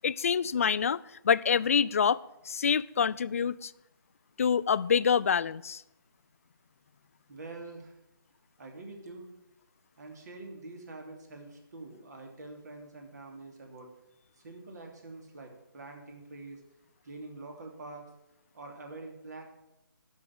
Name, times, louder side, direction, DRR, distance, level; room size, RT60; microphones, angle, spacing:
voice 1, 0.0-3.7 4.4-5.8, left 7 dB, 40° left, 19 dB, 0.3 m, -26 dB
voice 2, 7.3-8.0 8.6-9.3 10.0-13.9 14.4-16.6 17.0-18.1 18.5-19.4, right 2 dB, 50° right, 3 dB, 3.0 m, -45 dB
11.5 x 6.5 x 8.8 m, 0.87 s
figure-of-eight pair, 155°, 12 cm